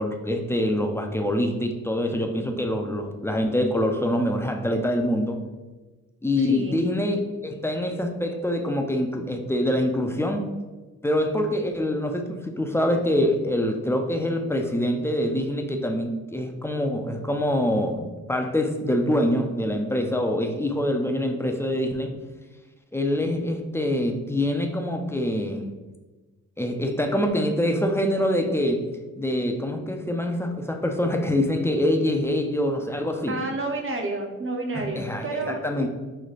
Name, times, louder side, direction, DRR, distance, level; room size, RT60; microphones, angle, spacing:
voice 1, 0.0-5.4 6.2-10.5 11.0-22.1 22.9-25.7 26.6-28.9 29.2-33.3 34.7-35.9, left 1 dB, 10° left, 3 dB, 0.4 m, -25 dB
voice 2, 6.4-6.8 33.3-35.6, right 2 dB, 40° right, 3 dB, 0.7 m, -30 dB
3.2 x 2.1 x 3.9 m, 1.2 s
cardioid pair, 65°, 34 cm